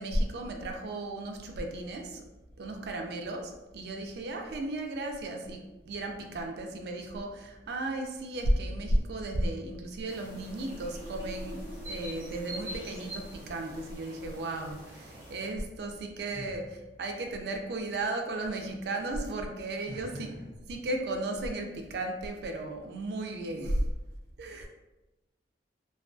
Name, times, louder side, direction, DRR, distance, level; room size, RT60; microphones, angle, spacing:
voice 1, 0.0-2.2 2.6-20.4 20.7-23.8 24.4-24.7, right 1 dB, 60° right, 3 dB, 0.3 m, -34 dB
sound 1, 9.8-14.2, equal, 80° left, 0.6 m, -46 dB
sound 2, 10.1-15.5, equal, 15° right, 0.8 m, -46 dB
voice 2, 19.9-20.4, equal, 15° left, -13 dB, 1.0 m, -42 dB
2.2 x 2.2 x 2.4 m, 1.1 s
head